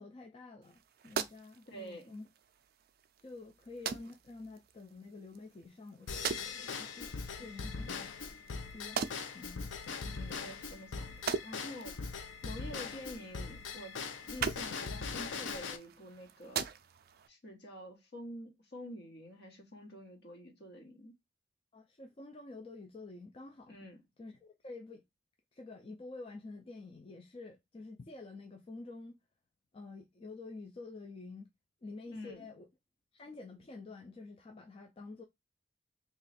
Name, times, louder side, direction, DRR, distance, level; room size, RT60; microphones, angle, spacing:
voice 1, 0.0-2.3 3.2-8.2 8.7-9.1 9.3-9.7 21.7-23.7 24.2-25.0 25.5-29.2 29.7-31.5 31.8-32.7 33.1-35.2, left 3 dB, 30° left, 0.4 m, -49 dB
sound 1, 0.6-17.3, right 6 dB, 55° right, 0.4 m, -43 dB
voice 2, 1.7-2.1 7.4-7.9 10.0-14.0 14.3-16.6 17.3-21.1 23.7-24.0 32.1-32.5, equal, 60° left, 1.2 m, -48 dB
Drum kit / Drum / Bell, 6.1-15.8, left 5 dB, 85° left, 0.5 m, -41 dB
3.0 x 2.4 x 4.0 m
head